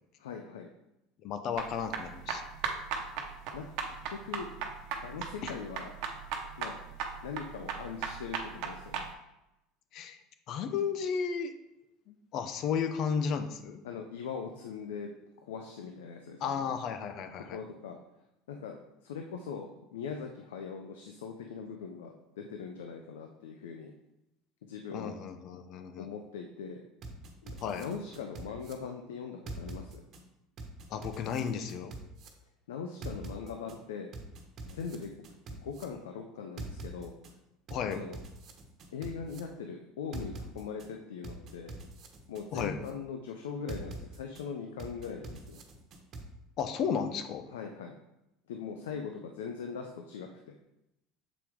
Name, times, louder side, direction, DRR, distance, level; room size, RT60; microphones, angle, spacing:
voice 1, 0.2-0.7 3.5-4.5 5.0-5.9 6.6-6.8 7.2-9.1 13.8-15.1 15.4-16.7 17.5-18.0 18.5-23.9 24.6-25.2 26.0-26.8 27.4-30.0 32.7-34.1 34.7-35.1 35.5-37.1 37.9-38.2 38.9-41.7 42.3-45.6 47.5-48.0 48.5-50.6, left 6 dB, 90° left, 4 dB, 0.6 m, -41 dB
voice 2, 1.2-2.4 5.4-5.5 9.9-10.2 10.5-11.5 12.1-13.8 16.4-17.6 24.9-26.1 27.6-27.9 30.9-31.9 37.7-38.0 42.5-42.8 46.6-47.4, left 6 dB, 55° left, 9 dB, 0.8 m, -33 dB
sound 1, 1.5-9.1, right 6 dB, 65° right, 1.0 m, -37 dB
sound 2, 27.0-28.7 29.5-30.2 30.6-32.3 33.0-33.8 34.1-35.8 36.6-37.3 37.7-39.4 40.1-40.9 41.2-42.9 43.7-44.4 44.8-46.2, right 2 dB, 45° right, 1.2 m, -43 dB
7.1 x 4.6 x 3.6 m, 0.88 s
supercardioid pair, 95°, 0 cm